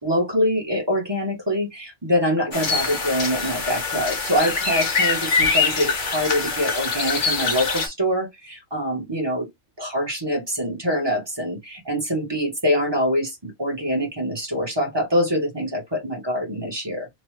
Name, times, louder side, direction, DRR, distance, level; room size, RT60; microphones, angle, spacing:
voice 1, 0.0-9.5 9.8-17.1, equal, 20° right, 1.1 m, -24 dB
sound 1, 2.5-7.9, left 4 dB, 45° left, 0.9 m, -24 dB
3.0 x 2.2 x 3.2 m
omnidirectional pair, 1.3 m